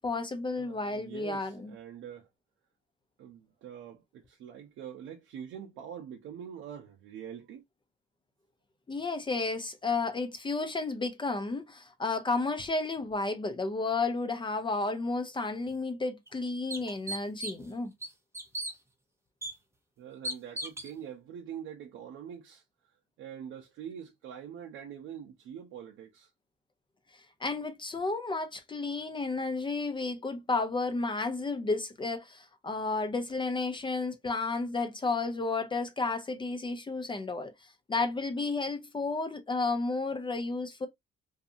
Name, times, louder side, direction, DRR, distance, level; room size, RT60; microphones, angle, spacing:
voice 1, 0.0-1.7 8.9-17.9 27.4-37.5 37.9-40.9, left 3 dB, 25° left, 0.5 m, -32 dB
voice 2, 0.6-2.3 3.2-7.6 20.0-22.6 23.2-26.3, right 9 dB, 80° right, 0.5 m, -44 dB
sound 1, 15.7-15.8 16.3-16.4 16.7-17.7 18.0-18.7 19.4-19.5 20.2-20.9, right 1 dB, 15° right, 0.7 m, -36 dB
2.6 x 2.4 x 2.4 m
cardioid pair, 90°, 20 cm